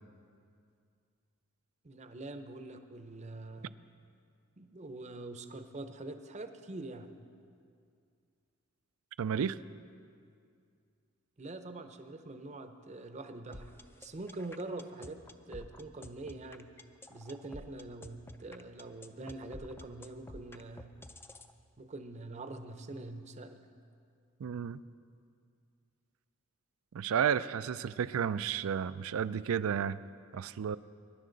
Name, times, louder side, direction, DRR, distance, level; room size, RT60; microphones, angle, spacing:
voice 1, 1.8-3.7 4.6-7.1 11.4-15.2 15.5-16.7 17.1-20.9 21.8-23.6, right 2 dB, 35° right, 8 dB, 0.7 m, -44 dB
voice 2, 9.2-9.6 24.4-24.8 26.9-30.0 30.3-30.8, right 7 dB, 80° right, 16 dB, 0.4 m, -32 dB
sound 1, 13.5-21.5, left 1 dB, 10° left, 0.4 m, -49 dB
21.0 x 11.0 x 3.9 m, 2.3 s
head